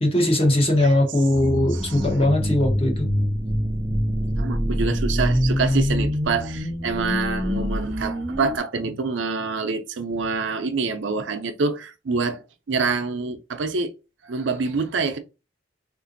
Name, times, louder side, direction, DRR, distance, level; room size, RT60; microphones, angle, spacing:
voice 1, 0.0-3.1, left 1 dB, 30° left, 0.8 m, -20 dB
sound 1, 1.3-8.6, equal, 15° right, 0.3 m, -25 dB
voice 2, 1.7-2.1 4.4-13.9 14.2-15.2, right 4 dB, 80° right, 0.5 m, -26 dB
3.7 x 2.5 x 2.6 m
head